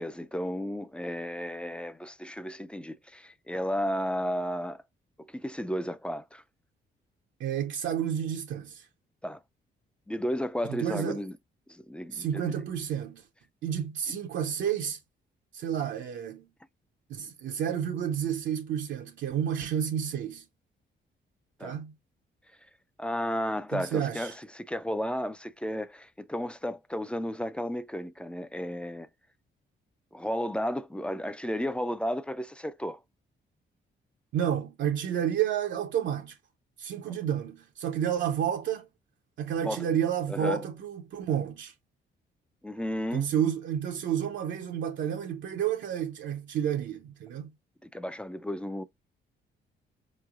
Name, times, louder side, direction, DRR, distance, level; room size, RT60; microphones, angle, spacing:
voice 1, 0.0-4.8 5.2-6.4 9.2-9.4 10.1-11.3 11.7-12.5 21.6-21.8 23.0-29.1 30.1-33.0 37.1-37.2 39.6-39.9 40.3-40.7 42.6-43.3 47.8-48.8, equal, 5° left, 0.3 m, -33 dB
voice 2, 7.4-8.9 10.7-11.2 12.1-13.2 13.6-15.0 15.5-16.5 17.1-20.4 21.6-21.9 23.7-24.4 34.3-36.4 36.8-38.9 39.4-41.7 43.1-47.5, right 9 dB, 75° right, 0.6 m, -30 dB
4.5 x 3.1 x 2.4 m
cardioid pair, 90°, 19 cm